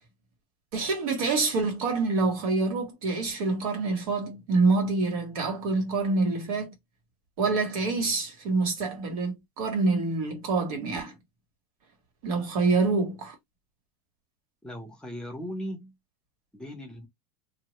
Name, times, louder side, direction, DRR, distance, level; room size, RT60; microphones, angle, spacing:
voice 1, 0.7-6.7 7.4-11.2 12.2-13.4, right 3 dB, 75° right, 1.9 m, -26 dB
voice 2, 14.6-15.9 16.5-17.1, equal, 5° left, 0.8 m, -38 dB
2.7 x 2.7 x 3.1 m
supercardioid pair, 155°, 19 cm